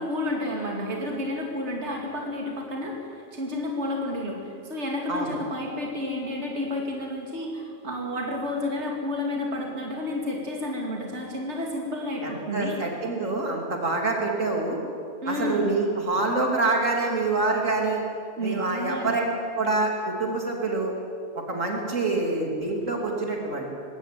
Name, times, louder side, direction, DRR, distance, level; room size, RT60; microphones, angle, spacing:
voice 1, 0.0-12.8 15.2-15.7 18.4-19.3, left 1 dB, 60° right, 0 dB, 2.9 m, -31 dB
voice 2, 12.2-14.8 15.3-18.0 18.4-19.2 19.5-20.9 21.4-23.7, right 3 dB, 85° right, 0 dB, 3.6 m, -26 dB
21.0 x 17.0 x 9.5 m, 2.4 s
omnidirectional pair, 1.3 m